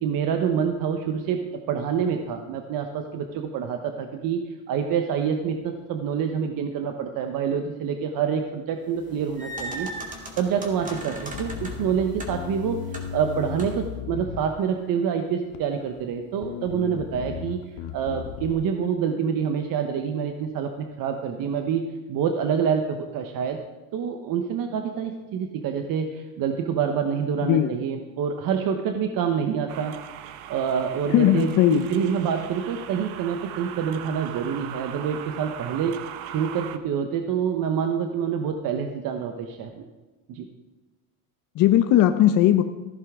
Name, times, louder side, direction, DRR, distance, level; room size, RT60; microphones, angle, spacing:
voice 1, 0.0-17.6 17.9-23.6 23.9-30.0 30.5-39.8 40.3-40.5, right 7 dB, 50° right, 5 dB, 1.1 m, -27 dB
sound 1, 9.0-13.9, right 1 dB, 20° right, 2.4 m, -38 dB
Bass guitar, 11.3-14.9 15.5-16.1 16.4-18.5, left 9 dB, 70° left, 1.1 m, -36 dB
sound 2, 29.7-36.8, right 10 dB, 80° right, 1.1 m, -39 dB
voice 2, 31.1-31.9 41.6-42.6, left 12 dB, 50° left, 8 dB, 0.7 m, -18 dB
15.0 x 10.5 x 3.7 m, 1.2 s
supercardioid pair, 120°, 43 cm